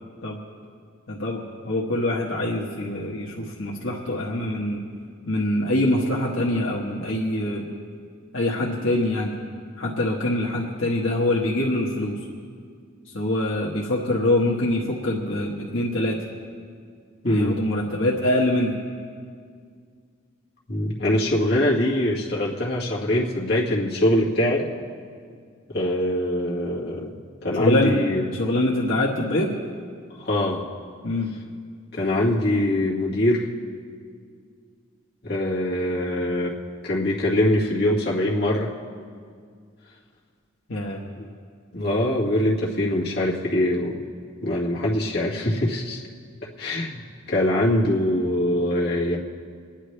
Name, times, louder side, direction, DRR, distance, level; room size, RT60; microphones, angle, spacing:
voice 1, 1.1-4.8 5.3-7.7 8.3-9.4 9.8-12.3 13.0-16.2 17.3-18.7 27.6-27.9 28.3-29.5 31.0-31.3 40.7-41.0, left 1 dB, 75° left, -3 dB, 1.4 m, -24 dB
voice 2, 17.2-17.6 20.7-24.6 25.7-27.1 27.4-28.2 30.2-30.7 31.9-33.5 35.2-36.6 36.8-38.7 41.2-41.3 41.7-44.0 44.4-46.0 46.6-49.2, left 1 dB, 50° left, -5 dB, 2.1 m, -23 dB
27.0 x 10.0 x 3.3 m, 2.1 s
head